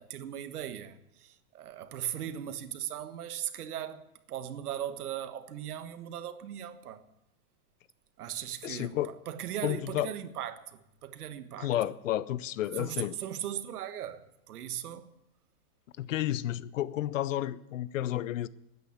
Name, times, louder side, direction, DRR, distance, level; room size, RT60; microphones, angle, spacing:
voice 1, 0.0-7.0 8.2-11.7 12.8-15.1, right 10 dB, 75° right, 1.4 m, -38 dB
voice 2, 8.6-9.1 9.6-10.1 11.6-13.2 16.0-18.5, left 13 dB, 55° left, 0.6 m, -31 dB
12.5 x 9.4 x 8.4 m
supercardioid pair, 170°, 45 cm